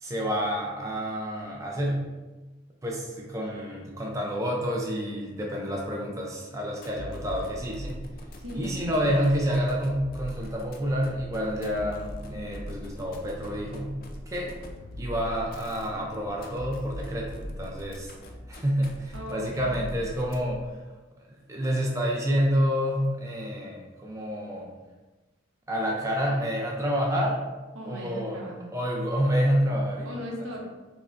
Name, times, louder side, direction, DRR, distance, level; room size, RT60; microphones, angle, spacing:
voice 1, 0.0-2.0 2.8-8.0 8.5-14.0 14.3-14.6 15.0-18.1 18.5-20.6 21.5-24.7 25.7-27.4 27.9-28.4 28.7-30.1, equal, 15° right, -2 dB, 0.4 m, -28 dB
sound 1, 6.8-20.7, left 1 dB, 45° left, 0.4 m, -41 dB
voice 2, 8.4-8.9 19.1-19.9 27.7-28.7 29.6-30.6, equal, 80° right, -1 dB, 0.8 m, -39 dB
5.0 x 2.1 x 2.5 m, 1.2 s
head